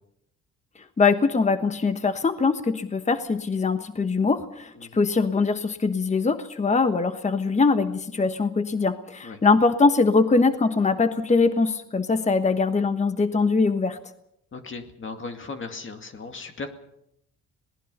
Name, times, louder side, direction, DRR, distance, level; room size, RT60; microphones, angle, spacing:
voice 1, 1.0-14.0, left 4 dB, 25° left, 10 dB, 1.2 m, -22 dB
voice 2, 14.5-16.7, left 4 dB, 40° left, 6 dB, 2.3 m, -37 dB
26.5 x 19.0 x 5.5 m, 0.78 s
cardioid pair, 90°, 30 cm